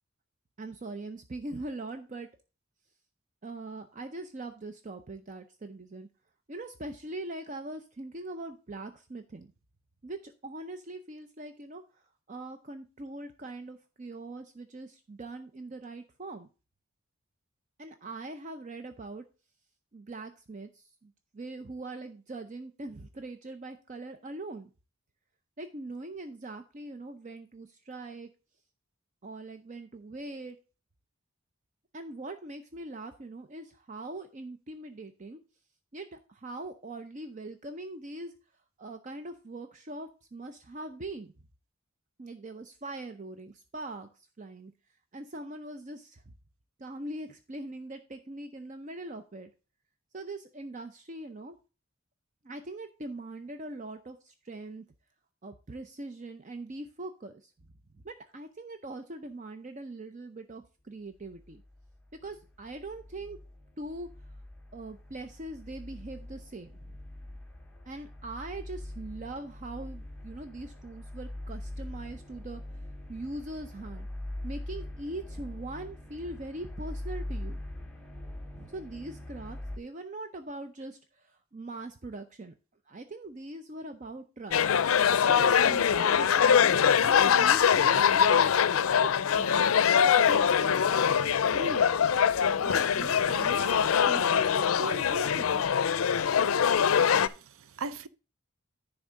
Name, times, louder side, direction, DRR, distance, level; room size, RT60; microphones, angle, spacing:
voice 1, 0.6-2.3 3.4-6.1 6.5-9.5 10.0-11.8 12.3-16.5 17.8-19.2 19.9-24.7 25.6-28.3 29.2-30.6 31.9-35.4 35.9-38.3 38.8-41.3 42.2-44.1 44.4-44.7 45.1-46.2 46.8-49.5 50.1-51.6 52.4-54.8 55.4-57.5 57.9-61.6 62.2-63.4 63.8-64.1 64.7-66.8 67.9-72.6 73.1-74.1 74.4-77.6 78.5-82.5 82.9-84.6 85.2-88.5 89.0-90.8 91.2-91.9 92.6-95.8, right 2 dB, 35° right, 0.5 m, -41 dB
sound 1, 61.2-79.8, left 1 dB, 5° left, 0.8 m, -42 dB
sound 2, 84.5-97.3, left 7 dB, 85° left, 0.4 m, -23 dB
voice 2, 97.1-98.1, right 4 dB, 80° right, 0.5 m, -40 dB
10.5 x 3.5 x 6.3 m
head